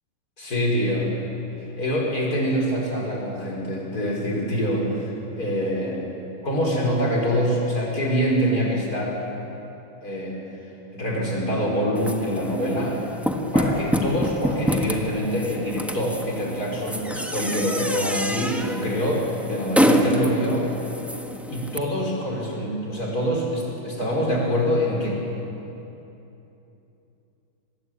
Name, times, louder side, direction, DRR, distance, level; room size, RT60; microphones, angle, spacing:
voice 1, 0.4-1.1 1.8-6.0 6.4-9.2 10.0-10.4 10.9-13.0 13.5-20.7 21.5-25.1, equal, 45° left, -2 dB, 5.5 m, -25 dB
sound 1, 12.0-21.8, equal, ahead, 0.9 m, -27 dB
24.5 x 20.5 x 8.9 m, 2.9 s
omnidirectional pair, 2.3 m